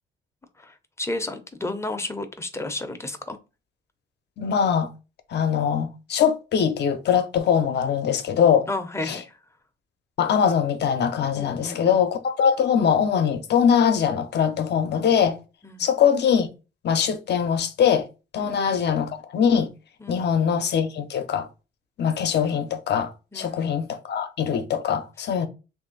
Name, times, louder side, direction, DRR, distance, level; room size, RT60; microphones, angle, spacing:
voice 1, 0.6-3.4 8.7-9.4 11.3-12.1 15.6-15.9 18.4-18.6 20.0-20.2 23.3-23.6, left 2 dB, 15° left, 0.6 m, -32 dB
voice 2, 4.4-4.9 5.3-8.7 9.1-9.2 10.2-15.4 15.8-16.5 16.8-18.1 18.3-19.7 20.1-21.5 22.0-25.5, left 7 dB, 60° left, 0.6 m, -22 dB
3.2 x 2.6 x 3.8 m
cardioid pair, 90°, 20 cm